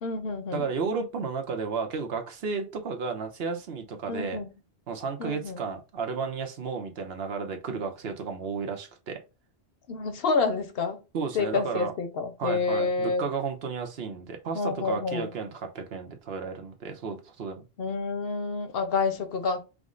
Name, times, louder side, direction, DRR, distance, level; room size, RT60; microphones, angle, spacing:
voice 1, 0.0-0.7 4.1-4.5 5.2-5.6 9.9-11.0 11.3-13.3 14.5-15.3 17.8-19.6, left 4 dB, 65° left, 0.9 m, -28 dB
voice 2, 0.5-4.4 4.9-9.2 11.1-11.9 12.4-17.6, right 5 dB, 70° right, 1.0 m, -33 dB
4.8 x 2.0 x 3.7 m
omnidirectional pair, 1.1 m